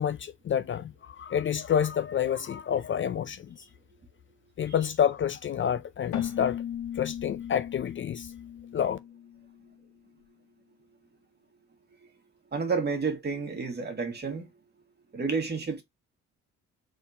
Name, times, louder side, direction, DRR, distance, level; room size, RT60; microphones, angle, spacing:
voice 1, 0.0-3.6 4.6-6.6 7.0-8.3 8.7-9.0, left 9 dB, 40° left, 0.5 m, -28 dB
Keyboard (musical), 6.1-9.8, left 10 dB, 70° left, 1.0 m, -37 dB
voice 2, 12.5-14.5 15.1-15.8, right 4 dB, 35° right, 1.9 m, -30 dB
4.2 x 3.9 x 2.7 m
cardioid pair, 90°, 30 cm